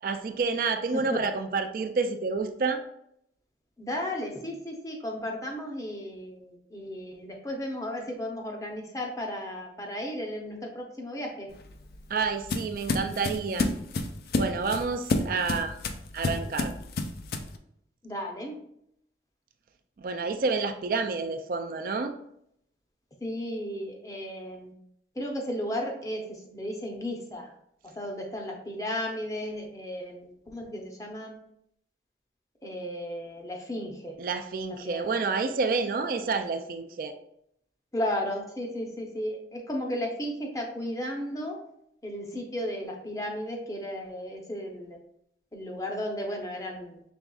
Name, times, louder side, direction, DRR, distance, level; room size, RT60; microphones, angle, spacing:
voice 1, 0.0-2.8 12.1-13.7 14.3-15.7 16.1-16.7 20.0-22.1 34.2-37.1, right 4 dB, 50° right, 7 dB, 0.3 m, -29 dB
voice 2, 3.8-11.5 18.0-18.6 23.2-24.7 25.2-27.5 27.8-31.3 32.6-34.2 34.7-35.0 37.9-41.6 42.0-45.0 45.5-47.0, left 1 dB, 20° left, 1 dB, 0.6 m, -34 dB
sound 1, 11.5-17.6, left 2 dB, 55° left, 0.4 m, -30 dB
5.2 x 3.4 x 2.3 m, 0.73 s
head